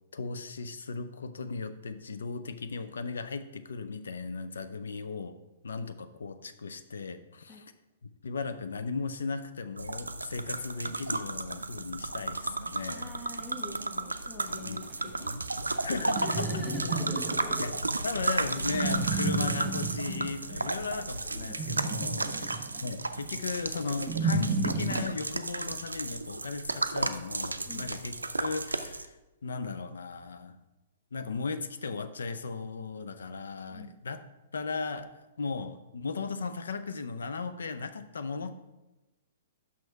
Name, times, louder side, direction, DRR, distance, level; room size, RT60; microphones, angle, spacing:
voice 1, 0.1-5.4 5.6-7.6 8.2-13.1 14.6-14.8 15.8-16.6 17.6-17.7 18.0-29.2 29.4-30.6 31.1-34.2 34.5-38.5, left 4 dB, 70° left, 11 dB, 0.5 m, -36 dB
sound 1, 9.8-29.0, right 3 dB, 85° right, 0.4 m, -34 dB
voice 2, 12.9-15.3 16.2-17.7 22.2-22.6 27.6-27.9 33.7-33.9, left 3 dB, 25° left, 0 dB, 0.9 m, -45 dB
sound 2, 14.4-25.1, right 3 dB, 20° right, 1.2 m, -34 dB
6.1 x 5.9 x 4.7 m, 1.0 s
figure-of-eight pair, 115°, 0 cm